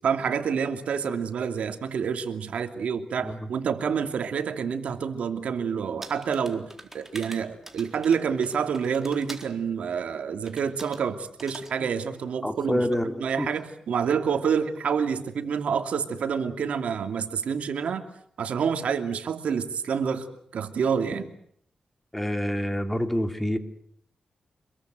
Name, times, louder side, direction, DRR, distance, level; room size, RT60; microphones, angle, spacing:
voice 1, 0.0-18.0 18.4-20.3 20.5-21.3, right 6 dB, 80° right, 7 dB, 2.7 m, -28 dB
voice 2, 3.2-3.5 12.4-13.5 22.1-23.6, equal, 10° left, 7 dB, 2.7 m, -27 dB
sound 1, 6.0-9.5 10.5-11.0 11.4-11.7, right 1 dB, 15° right, 4.1 m, -44 dB
26.5 x 22.5 x 7.9 m, 0.67 s
cardioid pair, 85°, 2 cm